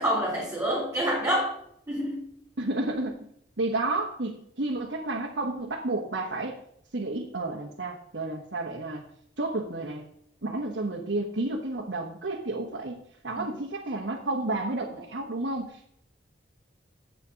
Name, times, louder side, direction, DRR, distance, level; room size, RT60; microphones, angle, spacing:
voice 1, 0.0-1.5 1.9-2.3 13.4-13.5, equal, 15° right, -7 dB, 3.5 m, -27 dB
voice 2, 2.6-3.3 3.6-6.5 6.9-9.1 9.4-10.1 10.4-15.9, right 2 dB, 85° right, -2 dB, 1.3 m, -31 dB
7.9 x 7.3 x 5.2 m, 0.69 s
head